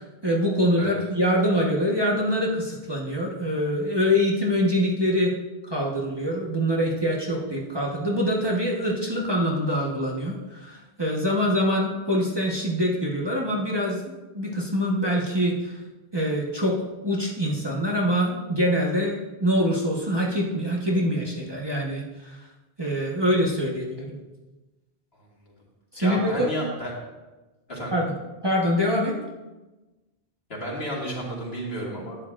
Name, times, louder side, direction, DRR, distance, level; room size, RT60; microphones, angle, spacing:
voice 1, 0.2-5.3 5.7-14.0 14.3-15.7 16.1-16.7 17.0-22.4 22.8-24.2 25.9-26.5 27.9-28.1 28.4-29.1, equal, 25° right, -3 dB, 1.1 m, -24 dB
voice 2, 26.0-26.9 27.7-28.0 30.5-32.2, equal, 65° left, -4 dB, 2.4 m, -32 dB
11.5 x 9.3 x 2.5 m, 1.1 s
omnidirectional pair, 1.1 m